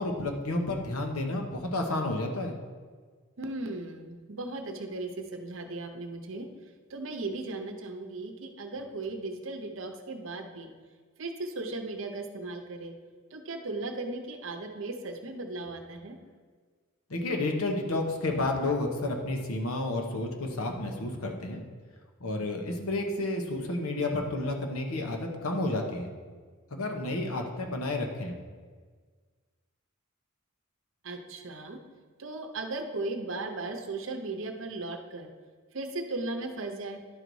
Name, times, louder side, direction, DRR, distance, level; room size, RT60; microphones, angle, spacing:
voice 1, 0.0-2.6 17.1-21.6 22.2-26.1 26.7-28.3, left 2 dB, 85° left, 3 dB, 1.0 m, -31 dB
voice 2, 3.4-6.5 6.9-10.7 11.2-12.9 13.3-16.2 31.0-31.8 32.2-35.3 35.7-37.0, right 2 dB, 60° right, 5 dB, 0.7 m, -37 dB
10.5 x 4.0 x 4.7 m, 1.5 s
head